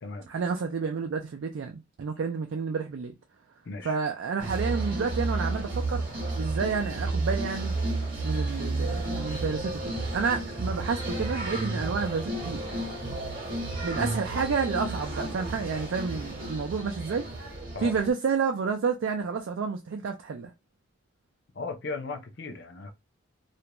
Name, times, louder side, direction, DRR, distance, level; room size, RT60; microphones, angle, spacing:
voice 1, 0.3-3.1 3.8-6.0 6.3-7.8 8.2-12.6 13.8-17.3 17.8-20.5, right 5 dB, 65° right, 0.3 m, -30 dB
voice 2, 3.6-4.0 17.7-17.9 21.5-22.9, left 3 dB, 55° left, 0.5 m, -36 dB
sound 1, 4.4-18.1, right 2 dB, 45° right, 0.9 m, -32 dB
2.4 x 2.1 x 2.9 m
head